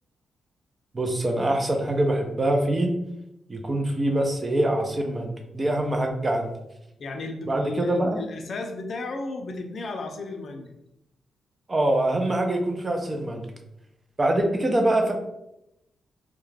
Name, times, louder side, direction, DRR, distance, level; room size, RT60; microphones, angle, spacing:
voice 1, 0.9-2.9 3.5-6.5 7.5-8.2 11.7-13.5 14.2-15.1, right 1 dB, 25° right, 3 dB, 0.4 m, -24 dB
voice 2, 7.0-10.7, left 3 dB, 55° left, 4 dB, 0.4 m, -34 dB
2.3 x 2.1 x 3.1 m, 0.86 s
cardioid pair, 120°, 0 cm